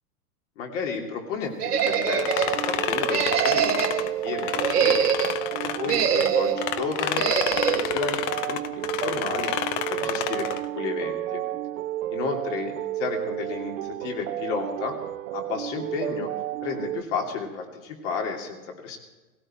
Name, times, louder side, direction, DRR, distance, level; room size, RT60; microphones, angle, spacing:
voice 1, 0.6-5.0 5.6-9.5 9.9-11.4 12.1-14.9 15.3-16.3 16.6-19.0, left 5 dB, 50° left, 2 dB, 3.1 m, -33 dB
sound 1, 1.6-2.5 3.1-4.1 4.5-5.4 5.9-6.6 7.2-7.8, right 8 dB, 85° right, 1.6 m, -24 dB
sound 2, 1.8-6.3 6.6-10.7, left 11 dB, 30° left, 0.6 m, -30 dB
sound 3, 2.1-17.0, right 14 dB, 55° right, 0.7 m, -32 dB
17.0 x 16.5 x 4.5 m, 1.2 s
hypercardioid pair, 130°, 45 cm